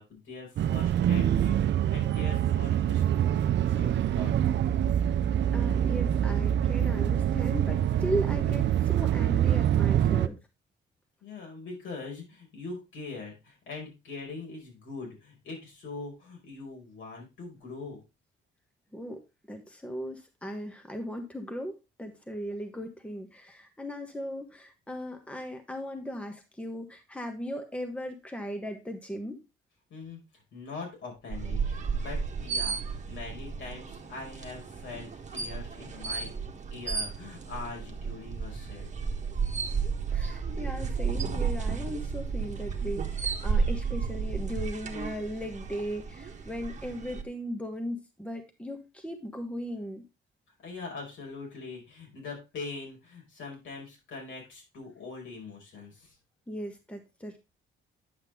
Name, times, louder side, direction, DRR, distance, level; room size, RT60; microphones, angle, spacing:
voice 1, 0.0-3.4 3.6-4.6 11.2-18.0 29.9-30.2 30.5-36.4 36.7-38.9 50.6-56.1, left 4 dB, 75° left, -1 dB, 5.1 m, -42 dB
sound 1, 0.6-10.3, right 10 dB, 65° right, 0.7 m, -25 dB
voice 2, 5.5-10.4 18.9-29.4 39.7-39.8 40.1-50.0 56.5-57.4, equal, 5° left, 5 dB, 1.4 m, -37 dB
sound 2, 31.3-47.2, right 5 dB, 35° right, 1.5 m, -33 dB
9.5 x 5.8 x 3.6 m, 0.26 s
cardioid pair, 90°, 20 cm